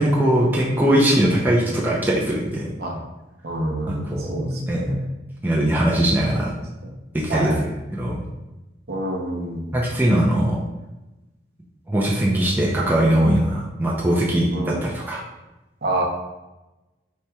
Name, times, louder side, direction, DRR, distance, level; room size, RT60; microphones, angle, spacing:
voice 1, 0.0-2.7 3.9-4.8 5.4-6.5 7.1-7.7 8.0-8.2 9.7-10.6 11.9-15.2, right 1 dB, 10° right, -5 dB, 0.5 m, -20 dB
voice 2, 3.4-5.0 6.8-6.9 7.3-7.7 8.9-9.8 14.5-14.8 15.8-16.0, right 1 dB, 60° right, 0 dB, 0.7 m, -27 dB
4.3 x 3.1 x 3.4 m, 1.0 s
head